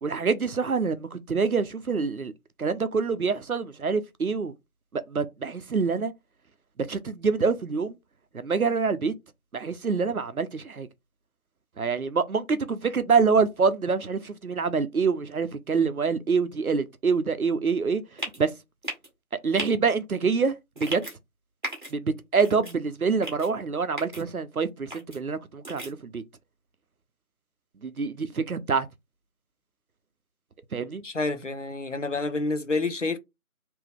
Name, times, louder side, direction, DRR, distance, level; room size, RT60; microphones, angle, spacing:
voice 1, 0.0-2.3 2.6-4.5 4.9-6.1 6.8-8.0 8.3-9.1 9.5-10.9 11.8-18.5 19.4-21.0 21.9-26.2 27.8-28.9 30.7-31.0, right 5 dB, 75° right, 0.7 m, -26 dB
sound 1, 18.2-18.4 18.8-19.1 19.6-19.7 20.8-21.1 21.6-21.9 22.4-22.7 23.2-23.5 24.0-24.2 24.9-25.2 25.6-25.9, right 1 dB, 35° right, 1.3 m, -35 dB
voice 2, 31.0-33.2, left 3 dB, 55° left, 0.7 m, -28 dB
3.2 x 2.9 x 3.7 m
figure-of-eight pair, 165°, 44 cm